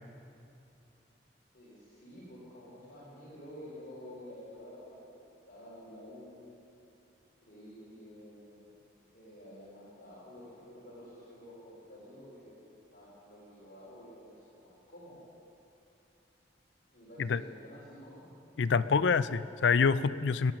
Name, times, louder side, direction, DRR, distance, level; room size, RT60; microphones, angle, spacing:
voice 1, 1.5-5.2 5.5-6.5 7.4-8.7 9.1-12.6 12.9-15.2 16.9-18.3, equal, 50° left, -7 dB, 4.0 m, -50 dB
voice 2, 18.6-20.5, left 5 dB, 70° left, 15 dB, 0.4 m, -26 dB
20.0 x 8.8 x 6.3 m, 2.7 s
head